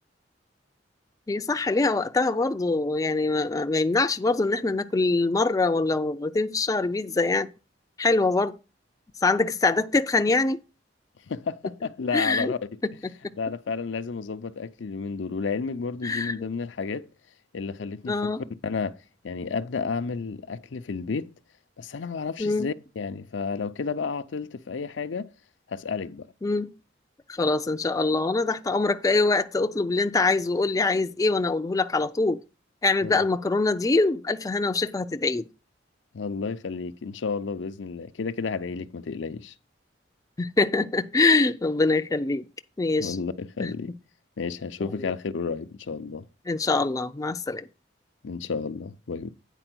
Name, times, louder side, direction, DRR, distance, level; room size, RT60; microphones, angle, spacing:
voice 1, 1.3-7.5 8.0-8.5 9.2-10.6 12.1-12.5 16.0-16.3 18.1-18.4 22.4-22.7 26.4-26.7 27.4-32.4 32.8-35.4 40.4-42.4 42.8-43.2 43.6-43.7 45.0-45.1 46.5-47.6, left 3 dB, 20° left, 0.4 m, -24 dB
voice 2, 11.3-12.6 13.4-17.1 17.5-18.3 18.6-19.0 19.2-21.3 21.8-25.3 25.7-26.3 33.0-33.2 36.1-39.5 43.0-43.9 44.4-46.2 48.2-49.3, left 5 dB, 85° left, 0.5 m, -31 dB
9.0 x 4.4 x 6.0 m
head